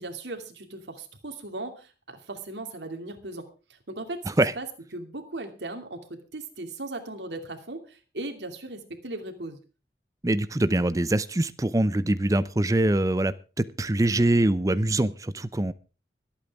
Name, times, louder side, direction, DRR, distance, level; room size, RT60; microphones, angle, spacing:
voice 1, 0.0-4.3 4.6-4.7 4.9-9.6, right 2 dB, 75° right, 2.6 m, -38 dB
voice 2, 10.2-15.7, right 1 dB, 20° right, 0.6 m, -24 dB
24.5 x 8.8 x 3.6 m
head